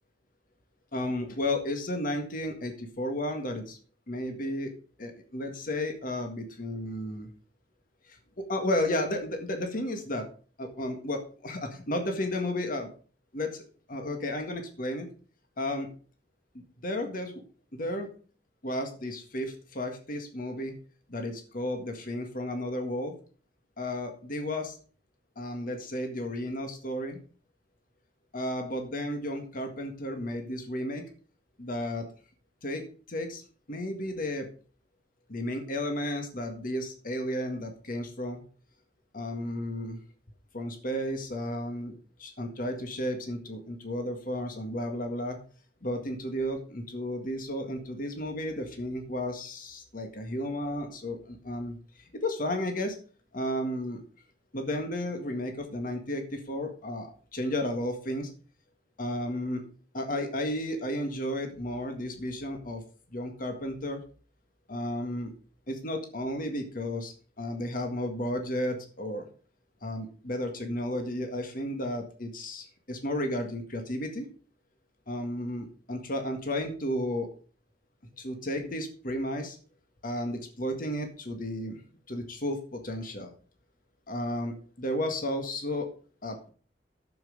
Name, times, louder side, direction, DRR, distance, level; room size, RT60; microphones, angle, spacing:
voice 1, 0.9-3.8 4.1-4.7 5.0-7.3 8.1-10.3 10.6-12.9 13.3-13.6 13.9-15.1 15.6-15.9 16.5-17.3 17.7-18.1 18.6-20.7 21.1-23.1 23.8-24.8 25.4-27.2 28.3-31.1 31.6-32.1 32.6-33.4 33.7-34.5 35.3-38.4 39.1-40.0 40.5-41.9 42.2-45.4 45.8-53.0 53.3-54.0 54.5-58.3 59.0-59.6 59.9-62.8 63.1-64.0 64.7-65.3 65.7-69.3 69.8-74.3 75.1-77.3 78.2-79.6 80.0-81.8 82.1-83.3 84.1-85.9 86.2-86.5, left 1 dB, 50° left, 5 dB, 1.8 m, -33 dB
10.5 x 7.5 x 5.2 m, 0.40 s
head